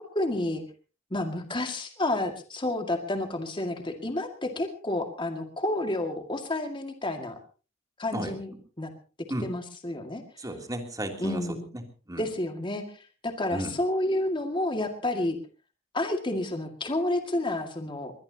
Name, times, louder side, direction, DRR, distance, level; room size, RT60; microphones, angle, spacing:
voice 1, 0.1-0.6 1.1-7.4 8.0-8.5 8.8-8.9 9.4-10.2 11.2-11.6 12.2-12.8 13.2-15.4 15.9-18.1, left 1 dB, 25° left, 5 dB, 2.1 m, -30 dB
voice 2, 10.4-11.4 11.7-12.2 13.5-13.8, right 1 dB, 20° right, 4 dB, 3.0 m, -34 dB
22.0 x 21.0 x 2.9 m, 0.35 s
head